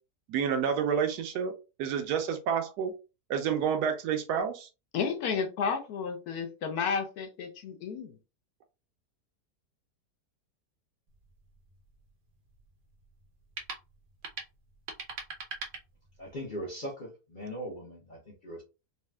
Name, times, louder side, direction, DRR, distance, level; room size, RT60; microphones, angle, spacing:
voice 1, 0.3-1.5 1.8-2.9 3.3-4.7, right 7 dB, 75° right, 1.1 m, -29 dB
voice 2, 4.9-8.1, left 6 dB, 75° left, 1.0 m, -32 dB
sound 1, 11.1-16.4, right 4 dB, 60° right, 0.7 m, -44 dB
voice 3, 16.2-18.6, equal, 45° left, 0.7 m, -40 dB
4.1 x 2.1 x 2.2 m
omnidirectional pair, 1.8 m